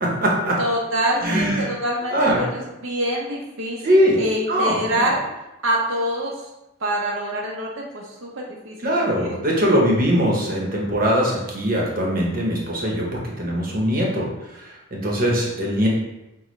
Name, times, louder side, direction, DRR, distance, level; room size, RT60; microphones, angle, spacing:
voice 1, 0.0-0.6 1.2-1.7 2.1-2.4 3.8-4.2 4.5-5.1 8.8-14.3 14.5-15.9, equal, 45° right, -2 dB, 1.0 m, -21 dB
voice 2, 0.6-5.2 5.6-6.5 6.8-9.4, equal, 85° right, -1 dB, 0.8 m, -26 dB
6.0 x 2.3 x 3.1 m, 0.95 s
head